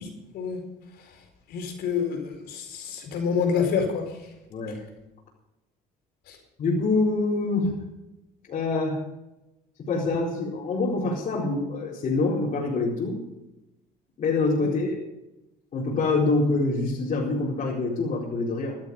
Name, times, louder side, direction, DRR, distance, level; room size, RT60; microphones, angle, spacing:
voice 1, 1.5-4.0 6.3-6.4 14.6-14.7, left 6 dB, 75° left, 3 dB, 4.5 m, -27 dB
voice 2, 4.5-4.8 6.6-7.7 8.5-9.0 9.9-13.2 14.2-15.1 15.7-18.8, left 3 dB, 50° left, -6 dB, 4.5 m, -25 dB
15.0 x 12.0 x 5.5 m, 0.96 s
cardioid pair, 110°, 17 cm